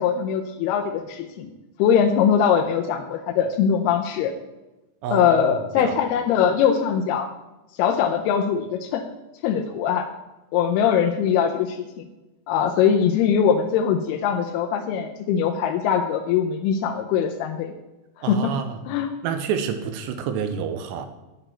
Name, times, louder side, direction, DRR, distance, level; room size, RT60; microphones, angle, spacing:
voice 1, 0.0-1.5 1.8-4.3 5.1-7.3 7.8-9.0 9.4-10.1 10.5-12.1 12.5-17.7 18.3-18.5 18.9-19.1, left 8 dB, 80° left, 3 dB, 2.5 m, -21 dB
voice 2, 18.2-18.8 19.2-21.1, right 7 dB, 80° right, 7 dB, 2.9 m, -28 dB
10.0 x 9.1 x 4.4 m, 1.0 s
omnidirectional pair, 5.0 m